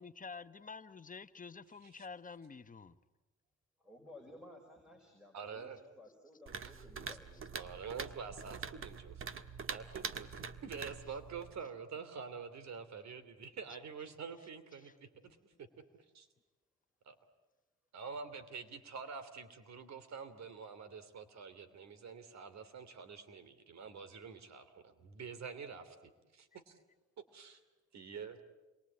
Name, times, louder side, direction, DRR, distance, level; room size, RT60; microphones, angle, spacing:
voice 1, 0.0-2.9, left 5 dB, 25° left, 1.1 m, -49 dB
voice 2, 3.8-7.8, left 1 dB, 5° right, 5.1 m, -56 dB
voice 3, 5.3-5.8 6.6-6.7 7.5-9.4 9.7-14.9 15.2-15.7 16.1-16.3 17.0-17.1 17.9-25.9 26.3-26.8 27.3-27.6 27.9-28.4, right 5 dB, 65° right, 3.1 m, -47 dB
sound 1, 6.5-11.6, right 5 dB, 45° right, 1.6 m, -45 dB
28.5 x 23.0 x 8.8 m
cardioid pair, 90°, 30 cm